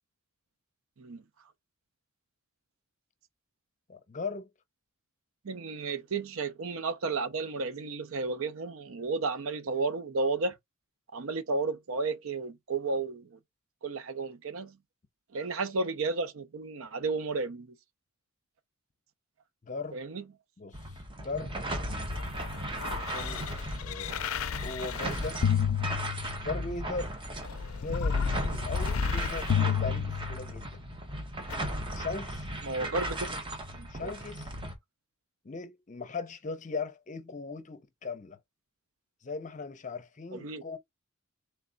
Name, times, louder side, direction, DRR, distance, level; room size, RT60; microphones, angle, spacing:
voice 1, 3.9-4.5 19.6-20.0 20.6-20.8 21.2-21.5 22.7-23.5 23.8-24.2 24.6-25.4 26.4-27.1 27.8-30.8 31.9-32.5 33.9-34.5 35.4-38.4 39.2-40.8, left 3 dB, 35° left, 0.7 m, -38 dB
voice 2, 5.4-10.6 11.1-13.4 13.8-14.8 15.3-17.8 19.9-20.2 32.6-33.4 33.7-34.1 40.3-40.6, right 3 dB, 70° right, 0.6 m, -33 dB
sound 1, 20.7-34.7, right 1 dB, 25° right, 0.9 m, -37 dB
sound 2, 21.8-26.7 27.4-30.7 31.5-31.6, left 7 dB, 75° left, 0.4 m, -31 dB
3.3 x 3.3 x 3.9 m
head